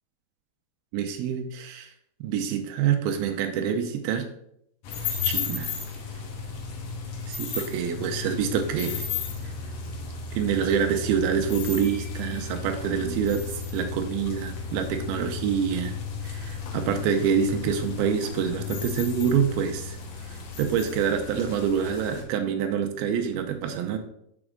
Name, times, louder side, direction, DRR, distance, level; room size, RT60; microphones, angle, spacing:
voice 1, 0.9-1.9 2.2-4.3 5.2-5.7 7.3-9.1 9.4-9.5 10.4-16.0 16.2-20.0 20.3-24.0, right 7 dB, 85° right, 6 dB, 2.5 m, -26 dB
sound 1, 4.8-22.2, left 5 dB, 70° left, 1.5 m, -34 dB
6.1 x 4.9 x 5.0 m, 0.73 s
omnidirectional pair, 4.4 m